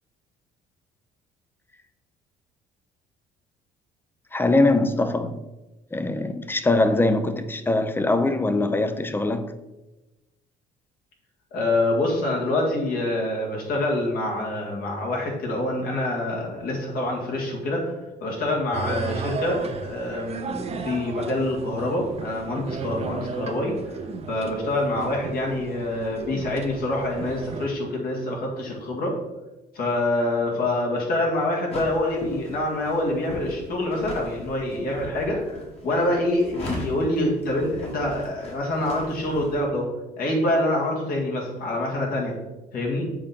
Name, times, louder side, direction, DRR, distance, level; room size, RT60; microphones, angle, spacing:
voice 1, 4.3-5.4 5.9-9.6, left 2 dB, 10° left, 0.5 m, -22 dB
voice 2, 11.5-23.8 24.3-29.2 29.7-39.9 40.2-42.4 42.7-43.1, left 1 dB, 60° left, 2.0 m, -26 dB
sound 1, 18.7-27.7, right 4 dB, 40° right, 0.6 m, -34 dB
sound 2, 31.7-39.6, left 1 dB, 35° left, 1.7 m, -38 dB
7.0 x 4.3 x 3.7 m
cardioid pair, 110°, 17 cm